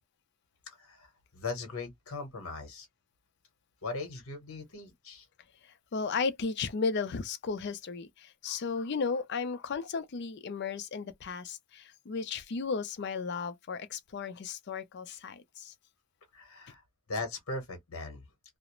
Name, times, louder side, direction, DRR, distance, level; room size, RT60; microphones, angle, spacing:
voice 1, 0.7-2.9 3.8-5.3 16.3-16.8 17.1-18.2, left 3 dB, 70° left, 0.9 m, -39 dB
voice 2, 5.6-15.7, left 5 dB, 50° left, 0.4 m, -35 dB
2.4 x 2.0 x 2.9 m
head